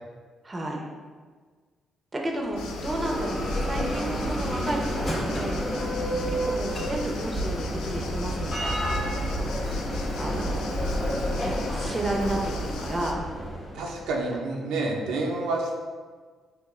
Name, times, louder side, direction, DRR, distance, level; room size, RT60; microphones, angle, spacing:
voice 1, 0.4-0.9 2.1-5.6 6.3-9.0 10.2-10.7 11.4-13.2, right 1 dB, 25° right, 0 dB, 0.6 m, -32 dB
Bell, 2.4-14.2, equal, 25° left, 1.0 m, -30 dB
sound 1, 2.6-13.1, left 4 dB, 85° left, 0.3 m, -40 dB
voice 2, 13.7-15.8, right 2 dB, 90° right, -1 dB, 0.5 m, -28 dB
3.6 x 2.6 x 3.1 m, 1.5 s
cardioid pair, 90°, 0 cm